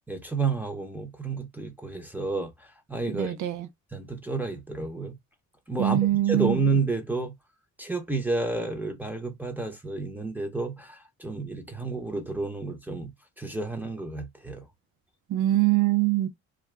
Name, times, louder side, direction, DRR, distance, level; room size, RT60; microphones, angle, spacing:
voice 1, 0.1-3.3 3.9-5.2 5.7-6.0 6.3-7.3 7.8-13.1 13.4-14.7, right 3 dB, 5° right, 0.9 m, -30 dB
voice 2, 3.1-3.7 5.8-6.6 15.3-16.3, right 15 dB, 80° right, 0.7 m, -23 dB
2.5 x 2.3 x 3.3 m
cardioid pair, 90°, 30 cm